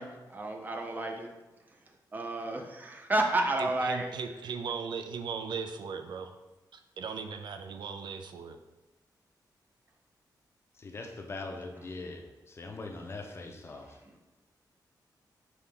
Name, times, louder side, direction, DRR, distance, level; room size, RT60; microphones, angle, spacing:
voice 1, 0.0-1.3 2.1-4.1 14.1-14.2, right 2 dB, 25° right, 3 dB, 0.5 m, -31 dB
voice 2, 3.6-6.4 6.7-8.6, right 5 dB, 80° right, 7 dB, 0.4 m, -38 dB
voice 3, 10.8-13.9, left 3 dB, 35° left, 3 dB, 0.5 m, -41 dB
5.3 x 2.8 x 3.4 m, 1.1 s
wide cardioid pair, 160°, 8 cm